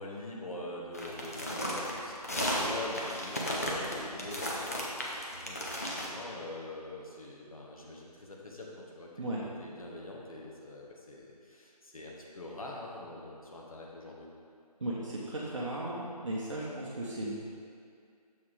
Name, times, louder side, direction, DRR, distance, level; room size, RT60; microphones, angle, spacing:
voice 1, 0.0-5.1 5.4-14.3, left 2 dB, 60° left, -3 dB, 1.3 m, -44 dB
sound 1, 0.9-6.1, equal, 25° left, 0.6 m, -34 dB
voice 2, 14.8-17.4, right 1 dB, 50° right, -6 dB, 0.9 m, -36 dB
7.1 x 4.2 x 4.7 m, 2.3 s
figure-of-eight pair, 165°, 21 cm